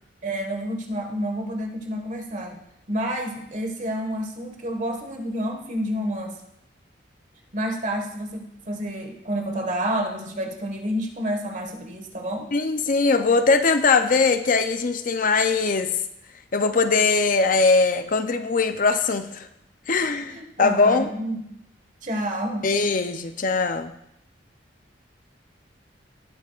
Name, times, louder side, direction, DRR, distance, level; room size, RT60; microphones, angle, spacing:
voice 1, 0.2-2.6 2.9-6.4 7.5-12.5 20.3-21.5 22.0-22.7, equal, 45° right, 3 dB, 1.6 m, -29 dB
voice 2, 12.5-15.9 16.5-19.5 19.9-21.1 22.6-23.9, left 4 dB, 50° left, 9 dB, 0.6 m, -21 dB
18.5 x 8.2 x 2.5 m, 0.79 s
head